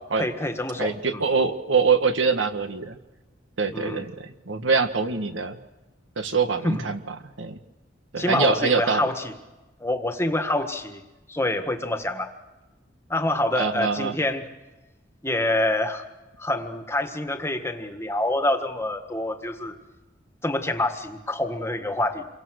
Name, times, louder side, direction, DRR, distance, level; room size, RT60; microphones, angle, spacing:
voice 1, 0.0-1.2 3.7-4.1 6.6-6.8 8.2-9.3 9.8-11.0 11.3-12.3 13.1-14.5 15.2-16.0 16.4-19.8 20.4-22.3, left 1 dB, 15° left, 7 dB, 1.7 m, -26 dB
voice 2, 0.8-3.0 3.6-5.6 6.2-7.0 7.4-7.6 8.1-9.0 13.6-14.1, right 5 dB, 80° right, 8 dB, 1.7 m, -24 dB
27.5 x 23.5 x 6.5 m, 1.1 s
head